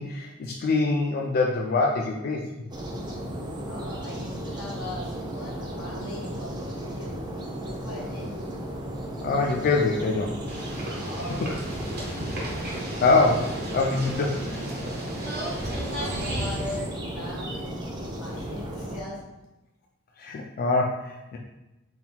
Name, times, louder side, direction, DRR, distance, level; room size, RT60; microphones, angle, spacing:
voice 1, 0.0-2.5 9.2-10.4 13.0-14.7 15.7-15.8 20.2-21.4, left 3 dB, 45° left, 0 dB, 0.3 m, -24 dB
sound 1, 2.7-19.0, right 1 dB, 20° right, 0.5 m, -35 dB
voice 2, 3.7-7.1 7.7-8.3 11.0-12.2 15.9-19.2, left 1 dB, 85° left, -3 dB, 1.3 m, -40 dB
sound 2, 10.5-16.8, right 1 dB, 45° right, 1.2 m, -34 dB
4.2 x 3.8 x 2.2 m, 1.0 s
head